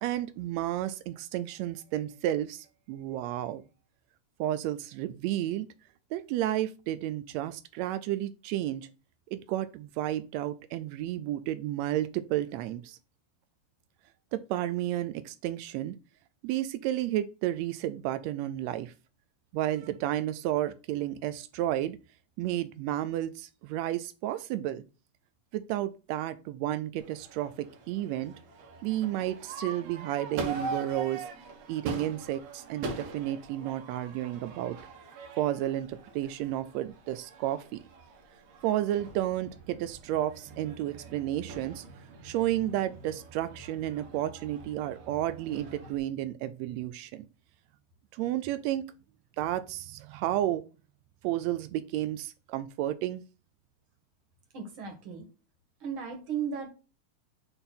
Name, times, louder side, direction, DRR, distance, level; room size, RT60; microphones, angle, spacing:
voice 1, 0.0-3.6 4.4-5.7 6.1-8.9 9.3-13.0 14.3-16.0 16.4-18.9 19.5-22.0 22.4-24.8 25.5-28.3 28.8-31.2 31.7-34.8 35.4-37.8 38.6-41.8 42.2-47.3 48.1-48.8 49.4-50.6 51.2-53.2, right 13 dB, 90° right, 1.5 m, -32 dB
Crowd / Fireworks, 27.0-46.0, right 3 dB, 75° right, 2.7 m, -43 dB
voice 2, 54.5-55.3 55.8-56.7, right 7 dB, 45° right, 2.2 m, -35 dB
7.9 x 3.6 x 4.0 m
omnidirectional pair, 3.7 m